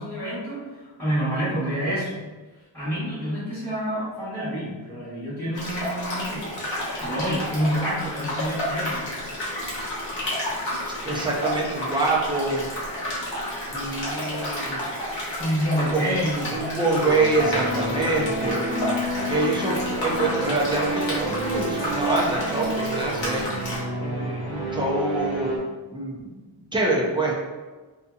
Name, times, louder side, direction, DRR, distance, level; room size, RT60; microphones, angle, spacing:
voice 1, 0.0-2.2 2.7-6.5 7.0-9.1 15.4-16.6, equal, 5° left, -13 dB, 1.3 m, -28 dB
sound 1, 5.5-23.8, left 1 dB, 65° left, 1.1 m, -31 dB
voice 2, 11.0-12.7 13.7-14.9 15.8-16.1 16.5-18.6 19.3-23.4 24.0-25.5 25.9-26.2 26.7-27.4, right 2 dB, 10° right, -3 dB, 0.4 m, -25 dB
sound 2, 17.0-25.6, right 1 dB, 70° right, 0.8 m, -29 dB
2.7 x 2.6 x 2.2 m, 1.3 s
wide cardioid pair, 135°, 48 cm